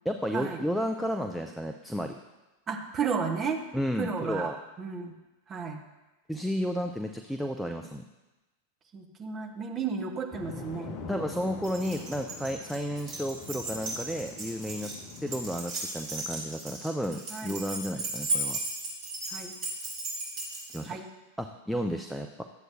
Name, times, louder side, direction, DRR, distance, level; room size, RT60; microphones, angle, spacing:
voice 1, 0.1-2.2 3.7-4.6 6.3-8.0 11.1-14.9 15.2-18.6 20.7-21.0 21.4-22.4, equal, ahead, 5 dB, 0.4 m, -32 dB
voice 2, 2.7-3.6 4.0-5.1 5.5-5.8 8.9-11.0 17.3-17.6 19.3-19.5 20.9-21.1, right 5 dB, 25° right, 3 dB, 1.0 m, -33 dB
sound 1, 10.3-15.5, left 4 dB, 35° left, 0.8 m, -44 dB
Keys jangling, 11.6-20.8, right 2 dB, 45° right, 3.1 m, -36 dB
11.5 x 7.7 x 2.5 m, 1.1 s
figure-of-eight pair, 90°, 0 cm